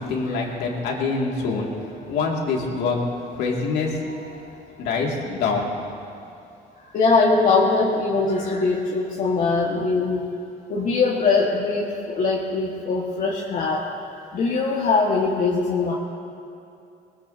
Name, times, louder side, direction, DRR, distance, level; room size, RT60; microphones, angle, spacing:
voice 1, 0.0-3.0 3.3-4.0 4.3-5.8, left 4 dB, 80° left, -1 dB, 2.6 m, -26 dB
voice 2, 6.9-10.3 10.7-13.9 14.3-15.9, left 4 dB, 55° left, -4 dB, 1.8 m, -21 dB
20.5 x 20.0 x 2.9 m, 2.6 s
cardioid pair, 110°, 17 cm